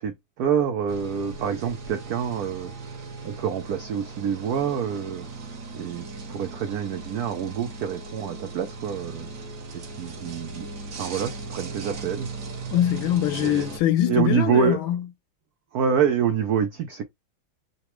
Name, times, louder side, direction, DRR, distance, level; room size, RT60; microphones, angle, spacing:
voice 1, 0.0-5.3 5.7-9.3 9.7-12.3 13.4-13.6 14.1-14.8 15.7-17.0, right 7 dB, 85° right, 0.8 m, -27 dB
sound 1, 0.9-13.8, right 4 dB, 55° right, 1.5 m, -38 dB
voice 2, 12.7-15.0, left 12 dB, 80° left, 1.3 m, -23 dB
4.0 x 2.2 x 3.0 m
omnidirectional pair, 2.3 m